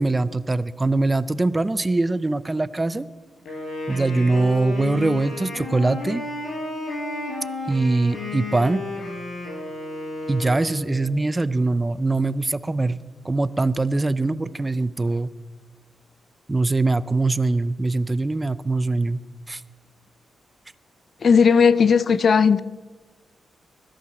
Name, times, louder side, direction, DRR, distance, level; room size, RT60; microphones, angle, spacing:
voice 1, 0.0-3.1 3.9-6.3 7.7-8.8 10.3-13.0 13.2-15.3 16.5-19.2 19.5-19.6, right 2 dB, 15° right, 0.5 m, -22 dB
Wind instrument woodwind instrument, 3.4-11.1, left 2 dB, 70° left, 6.2 m, -32 dB
voice 2, 21.2-22.6, left 6 dB, 45° left, 0.6 m, -16 dB
21.0 x 11.5 x 6.0 m
wide cardioid pair, 145°, 0 cm